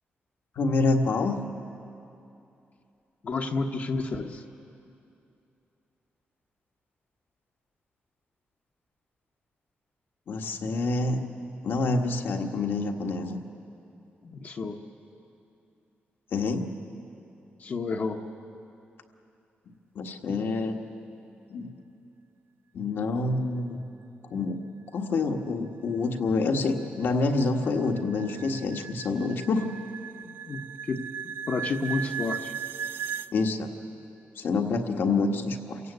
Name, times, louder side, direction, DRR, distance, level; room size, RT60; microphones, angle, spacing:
voice 1, 0.5-1.4 10.3-11.2 11.6-13.4 16.3-16.7 19.9-20.8 21.5-21.7 22.7-23.8 24.3-24.6 24.9-29.7 33.3-33.7 34.3-35.8, left 3 dB, 65° left, 4 dB, 1.6 m, -27 dB
voice 2, 3.2-4.4 14.2-14.8 17.6-18.2 30.2-30.6 30.9-31.0 31.5-32.5, left 3 dB, 50° left, 1 dB, 1.1 m, -30 dB
sound 1, 26.1-33.3, right 8 dB, 85° right, 0.5 m, -37 dB
28.0 x 17.0 x 8.3 m, 2.8 s
wide cardioid pair, 150°, 4 cm